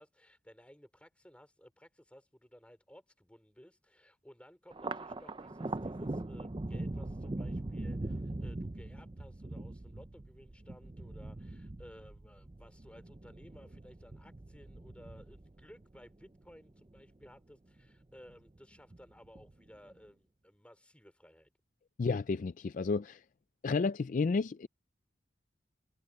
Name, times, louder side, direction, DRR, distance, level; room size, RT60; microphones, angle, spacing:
voice 1, 0.0-21.5, equal, 5° left, 4.3 m, -57 dB
Thunder, 4.7-17.4 17.8-18.6 18.9-19.8, right 2 dB, 25° right, 0.6 m, -41 dB
voice 2, 22.0-23.2 23.6-24.7, left 4 dB, 45° left, 0.4 m, -31 dB
head